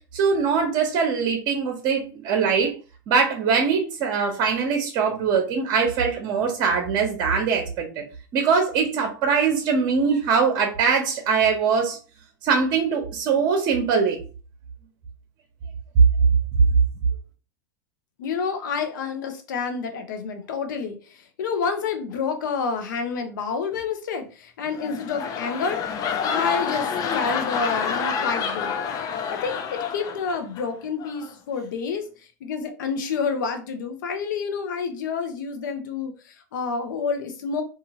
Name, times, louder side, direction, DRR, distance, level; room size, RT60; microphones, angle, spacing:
voice 1, 0.1-2.7 3.1-8.0 8.3-12.0 12.4-14.2, right 5 dB, 50° right, 2 dB, 0.8 m, -22 dB
voice 2, 18.2-25.8 26.2-28.7 29.3-37.6, left 5 dB, 80° left, 7 dB, 0.7 m, -29 dB
sound 1, 24.7-30.6 31.0-31.3, left 6 dB, 35° left, 0.4 m, -28 dB
2.8 x 2.5 x 2.9 m, 0.35 s
hypercardioid pair, 105°, 10 cm